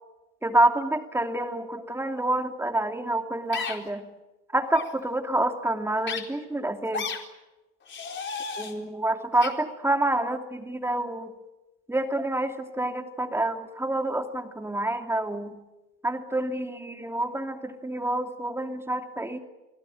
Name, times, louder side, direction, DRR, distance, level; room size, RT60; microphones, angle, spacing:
voice 1, 0.4-4.1 4.5-7.1 8.6-11.3 11.9-15.5 16.0-19.4, right 1 dB, 5° right, 5 dB, 2.8 m, -27 dB
sound 1, 3.5-3.8 4.7-4.9 6.0-6.2 6.9-7.2 7.9-8.7 9.4-9.5, left 5 dB, 30° left, 4.3 m, -32 dB
29.5 x 18.0 x 9.3 m, 1.0 s
supercardioid pair, 105°, 37 cm